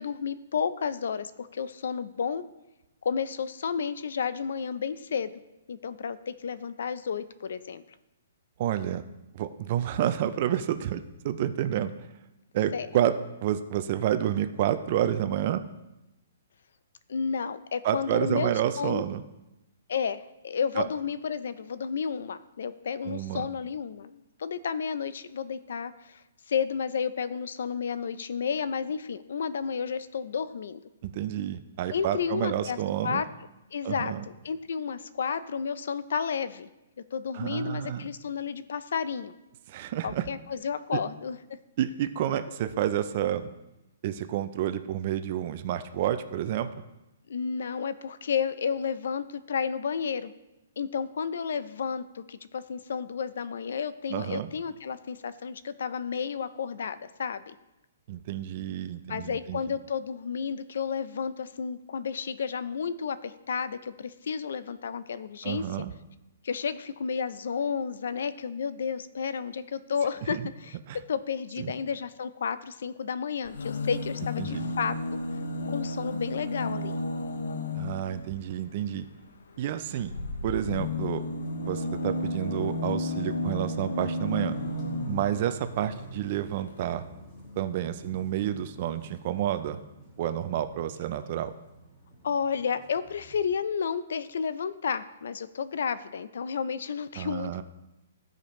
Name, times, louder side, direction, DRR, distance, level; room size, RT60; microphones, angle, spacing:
voice 1, 0.0-2.4 3.0-5.3 5.7-7.8 12.7-12.9 17.1-18.5 18.8-19.0 19.9-26.2 26.5-30.8 31.9-33.3 33.7-34.1 34.4-36.7 37.1-39.3 40.0-41.4 47.3-50.3 50.8-57.6 59.1-65.6 66.4-70.8 71.1-74.9 75.7-77.0 92.2-97.6, left 6 dB, 60° left, 14 dB, 0.5 m, -31 dB
voice 2, 8.6-9.0 9.3-11.9 12.5-13.2 13.4-15.6 17.8-19.2 20.8-20.9 23.0-23.5 31.0-33.2 33.8-34.2 37.3-38.1 39.7-40.3 40.9-41.0 41.8-43.5 44.0-46.7 54.1-54.5 58.1-59.6 65.4-65.9 70.3-70.4 70.9-71.0 71.6-71.7 74.4-74.7 77.7-79.1 79.6-80.1 80.4-81.2 81.6-84.5 85.1-87.1 87.6-89.8 90.2-91.5 97.2-97.6, right 11 dB, 30° right, 10 dB, 0.4 m, -29 dB
sound 1, 73.4-78.3 80.0-85.4 86.4-86.5 86.7-86.8, left 2 dB, 90° left, 0.8 m, -32 dB
sound 2, 81.3-93.4, equal, 20° left, 1.3 m, -47 dB
15.0 x 5.1 x 3.1 m, 0.97 s
hypercardioid pair, 180°, 0 cm